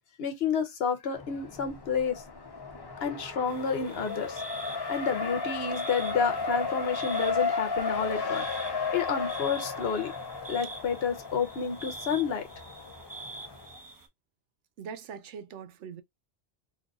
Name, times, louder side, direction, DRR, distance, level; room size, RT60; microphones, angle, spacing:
voice 1, 0.2-2.2 3.0-4.4 4.9-10.1 10.5-12.5, left 6 dB, 65° left, 0.9 m, -30 dB
Race car auto racing, 1.2-13.8, left 4 dB, 35° left, 0.4 m, -34 dB
sound 1, 3.5-14.1, right 2 dB, 20° right, 0.7 m, -46 dB
voice 2, 14.8-16.0, right 7 dB, 90° right, 1.0 m, -42 dB
3.8 x 2.6 x 2.3 m
omnidirectional pair, 1.2 m